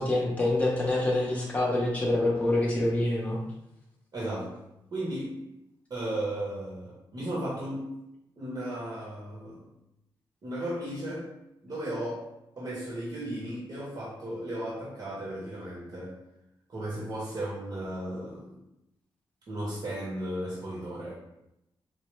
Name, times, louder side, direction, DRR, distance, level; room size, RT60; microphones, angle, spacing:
voice 1, 0.0-3.4, left 2 dB, 15° left, -3 dB, 0.8 m, -26 dB
voice 2, 4.1-4.6 4.9-5.4 5.9-7.9 8.4-9.7 10.4-11.3 11.6-12.3 12.6-16.2 16.7-18.6 19.5-21.1, right 1 dB, 50° right, -6 dB, 1.0 m, -35 dB
4.5 x 2.1 x 3.1 m, 0.87 s
wide cardioid pair, 145°, 9 cm